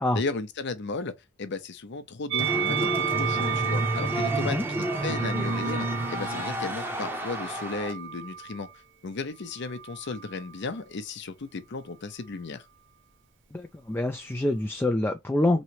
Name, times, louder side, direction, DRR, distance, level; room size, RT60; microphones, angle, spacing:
voice 1, 0.1-1.1 1.4-8.7 9.0-12.6, left 3 dB, 55° left, 0.6 m, -35 dB
Musical instrument, 2.3-8.7 9.5-10.5, right 8 dB, 60° right, 0.5 m, -33 dB
sound 1, 2.4-7.9, right 1 dB, 10° right, 0.7 m, -30 dB
voice 2, 13.5-15.6, left 1 dB, 10° left, 0.3 m, -26 dB
3.1 x 2.8 x 2.8 m
head